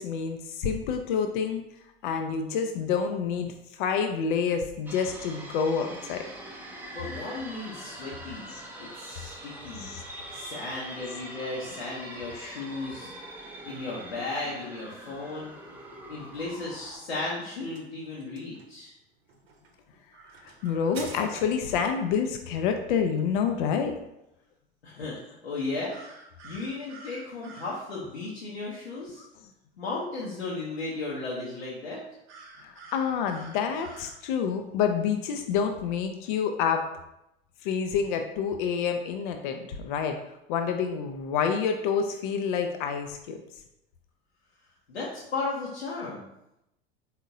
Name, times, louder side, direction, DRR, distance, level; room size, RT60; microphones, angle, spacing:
voice 1, 0.0-1.6 2.0-6.2 8.5-8.6 9.7-10.0 11.4-11.5 20.4-24.0 32.6-36.9 37.6-40.2 40.5-43.4, left 6 dB, 50° left, 5 dB, 0.4 m, -28 dB
sound 1, 4.9-17.0, right 1 dB, 5° right, 0.5 m, -43 dB
voice 2, 6.9-8.5 8.8-9.9 10.3-13.1 13.6-15.6 16.1-18.9 24.8-25.2 25.4-25.9 26.4-29.2 29.8-32.0 44.9-46.3, left 3 dB, 75° left, -5 dB, 0.8 m, -35 dB
sound 2, 16.8-21.8, right 3 dB, 70° right, 0.8 m, -48 dB
sound 3, 20.1-21.5 25.9-27.8 32.3-34.2, right 3 dB, 35° right, 0.9 m, -49 dB
4.2 x 3.6 x 2.6 m, 0.86 s
figure-of-eight pair, 75°, 32 cm